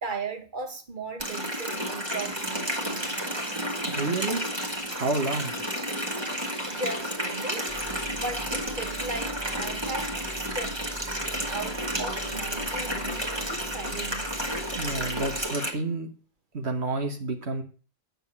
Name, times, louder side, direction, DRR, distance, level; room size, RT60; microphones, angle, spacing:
voice 1, 0.0-3.3 3.8-4.1 6.0-10.2 10.5-10.8 11.5-14.5, right 3 dB, 50° right, 1.7 m, -38 dB
Water tap faucet, 1.2-15.7, equal, 25° right, 1.8 m, -31 dB
voice 2, 3.9-4.6 4.9-5.6 14.8-16.1 16.5-17.6, right 3 dB, 80° right, 1.8 m, -30 dB
sound 1, 7.7-15.5, right 1 dB, 20° left, 1.5 m, -43 dB
9.0 x 6.8 x 7.4 m
omnidirectional pair, 1.1 m